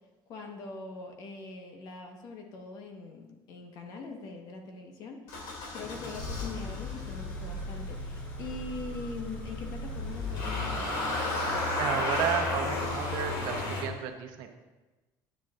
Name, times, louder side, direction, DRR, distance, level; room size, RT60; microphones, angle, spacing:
voice 1, 0.3-11.0, left 4 dB, 50° left, 3 dB, 1.2 m, -42 dB
Motor vehicle (road) / Engine starting, 5.3-13.8, left 2 dB, 85° left, 2.5 m, -33 dB
Car / Idling, 5.8-10.9, left 2 dB, 15° left, 0.9 m, -46 dB
voice 2, 11.8-14.6, right 9 dB, 65° right, 5 dB, 0.9 m, -32 dB
10.5 x 9.4 x 2.5 m, 1.2 s
cardioid pair, 165°, 8 cm